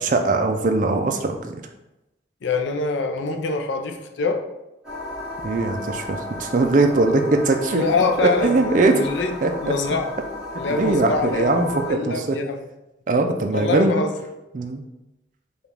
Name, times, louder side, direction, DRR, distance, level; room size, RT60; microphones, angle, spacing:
voice 1, 0.0-1.6 5.4-7.8 8.4-9.0 9.4-9.5 10.7-12.4 13.1-13.9 14.5-14.8, right 2 dB, 45° right, 5 dB, 0.4 m, -21 dB
voice 2, 2.4-4.4 7.7-10.2 10.6-12.7 13.5-14.2, left 4 dB, 80° left, 5 dB, 0.5 m, -25 dB
sound 1, 4.8-11.9, left 1 dB, 5° right, 1.4 m, -33 dB
4.9 x 2.4 x 3.3 m, 0.95 s
head